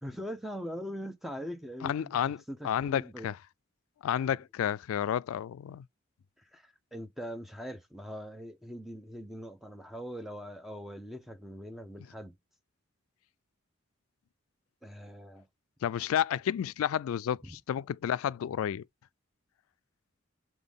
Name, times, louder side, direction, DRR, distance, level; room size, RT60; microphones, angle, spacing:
voice 1, 0.0-3.3 6.4-12.4 14.8-15.5 17.4-17.6, equal, ahead, 0.8 m, -42 dB
voice 2, 1.8-2.4 2.6-3.4 4.0-5.8 15.8-18.8, left 9 dB, 90° left, 0.3 m, -31 dB
7.3 x 3.8 x 3.6 m
head